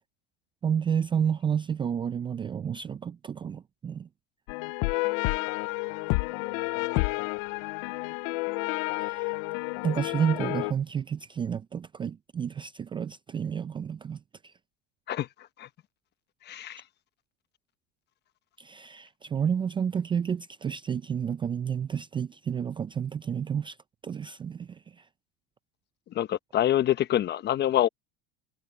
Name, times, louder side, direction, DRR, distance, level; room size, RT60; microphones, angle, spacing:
voice 1, 0.6-4.1 9.0-9.3 9.8-14.5 18.6-23.8 24.0-25.0, right 7 dB, 15° right, 0.4 m, -30 dB
sound 1, 4.5-10.7, left 26 dB, 65° left, 0.5 m, -30 dB
voice 2, 16.5-16.8 26.1-27.9, left 12 dB, 35° left, 1.1 m, -26 dB
supercardioid pair, 130°, 29 cm